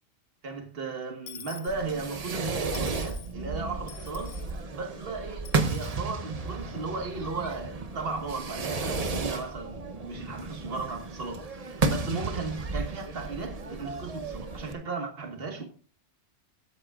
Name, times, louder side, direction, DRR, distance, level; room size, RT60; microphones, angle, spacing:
voice 1, 0.4-4.4 4.7-15.7, right 4 dB, 55° right, 1.8 m, -36 dB
Dishes pots and pans / Coin (dropping), 1.3-2.4 2.7-3.3 3.9-4.6 5.4-6.0, left 9 dB, 80° left, 1.1 m, -47 dB
Fireworks, 1.7-14.7, right 3 dB, 35° right, 0.9 m, -33 dB
21.0 x 8.3 x 2.4 m
omnidirectional pair, 1.2 m